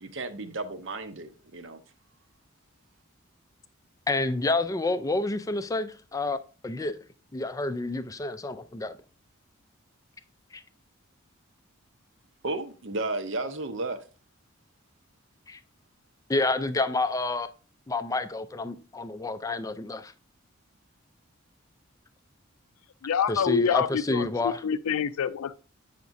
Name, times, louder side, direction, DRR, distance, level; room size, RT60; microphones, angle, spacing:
voice 1, 0.0-1.8 12.4-14.0, right 2 dB, 60° right, 0.7 m, -33 dB
voice 2, 4.1-6.4 6.6-6.9 7.3-8.9 10.5-10.6 15.5-15.6 16.3-17.5 17.9-20.1 23.3-24.6, left 2 dB, 15° left, 0.3 m, -29 dB
voice 3, 23.0-25.6, left 7 dB, 90° left, 0.4 m, -27 dB
8.2 x 5.8 x 2.6 m
head